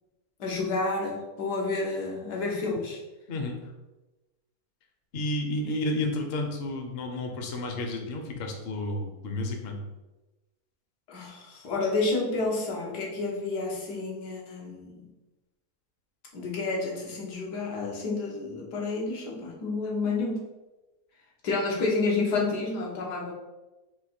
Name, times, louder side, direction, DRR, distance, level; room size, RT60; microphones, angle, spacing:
voice 1, 0.4-3.0 5.6-5.7 11.1-15.1 16.3-20.5 21.4-23.3, left 3 dB, 90° left, -2 dB, 1.5 m, -30 dB
voice 2, 3.3-3.6 5.1-9.8, left 1 dB, 55° left, 3 dB, 0.7 m, -31 dB
3.9 x 2.5 x 4.3 m, 1.1 s
omnidirectional pair, 1.7 m